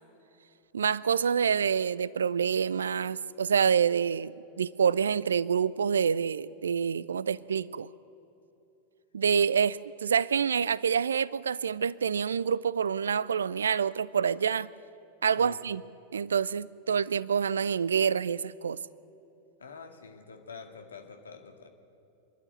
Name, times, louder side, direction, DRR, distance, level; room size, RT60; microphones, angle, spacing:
voice 1, 0.7-7.9 9.1-14.7 15.2-15.8 16.1-18.8, right 7 dB, 70° right, 21 dB, 0.4 m, -27 dB
voice 2, 19.6-21.7, left 5 dB, 70° left, 5 dB, 2.1 m, -46 dB
26.5 x 11.5 x 9.6 m, 2.9 s
figure-of-eight pair, 90°, 0 cm